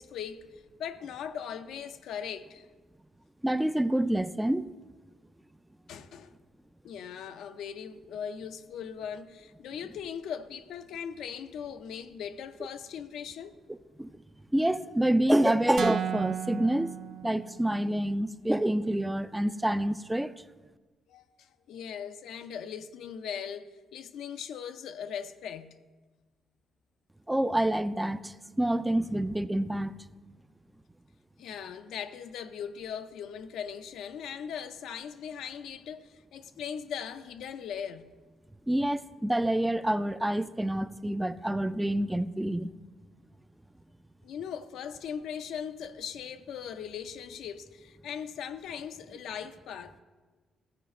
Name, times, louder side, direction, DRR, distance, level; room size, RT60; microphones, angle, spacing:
voice 1, 0.0-2.7 5.9-6.3 6.8-13.6 21.1-25.8 31.4-38.1 44.2-50.0, left 8 dB, 80° left, 0.5 m, -39 dB
voice 2, 3.4-4.7 14.0-14.1 14.5-17.0 17.2-20.3 27.3-29.9 38.7-42.7, right 1 dB, 5° right, 0.3 m, -27 dB
sound 1, 15.8-17.9, right 8 dB, 60° right, 0.6 m, -34 dB
14.5 x 5.0 x 4.2 m
cardioid pair, 90°, 0 cm